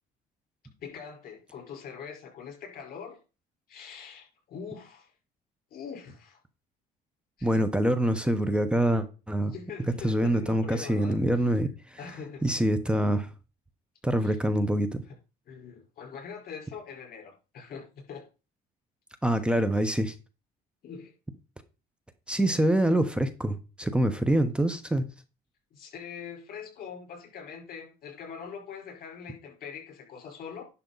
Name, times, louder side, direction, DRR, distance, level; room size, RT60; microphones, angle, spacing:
voice 1, 0.8-3.2 3.7-5.1 5.7-6.4 7.4-7.7 9.5-11.5 12.0-12.4 14.2-14.4 15.1-15.2 15.5-18.3 20.8-21.1 25.7-30.6, left 6 dB, 60° left, 4.4 m, -43 dB
voice 2, 7.4-9.5 10.0-11.7 12.4-13.3 14.0-15.0 19.2-20.1 22.3-25.0, right 1 dB, 5° right, 1.0 m, -25 dB
11.0 x 5.8 x 4.0 m
cardioid pair, 110°, 17 cm